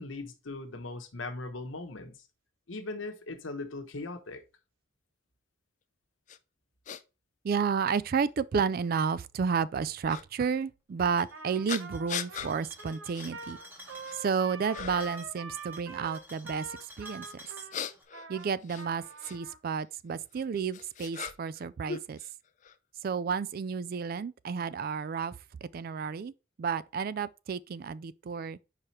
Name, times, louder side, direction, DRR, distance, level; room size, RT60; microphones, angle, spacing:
voice 1, 0.0-2.2 2.7-4.4, left 2 dB, 85° left, 1.1 m, -39 dB
sound 1, 6.3-6.4 6.9-7.0 7.9-8.0 10.1-10.2 11.7-12.5 13.1-13.3 13.8-14.3 14.7-15.2 17.4-19.4 20.3-21.6 21.9-22.7, left 8 dB, 40° left, 0.4 m, -39 dB
voice 2, 7.4-13.6 14.1-17.3 18.3-22.2 23.0-26.3 26.6-28.6, right 6 dB, 50° right, 0.3 m, -31 dB
sound 2, 11.1-18.0, equal, 10° right, 1.7 m, -52 dB
Trumpet, 11.3-19.6, right 3 dB, 80° right, 1.0 m, -45 dB
4.9 x 4.8 x 4.2 m
head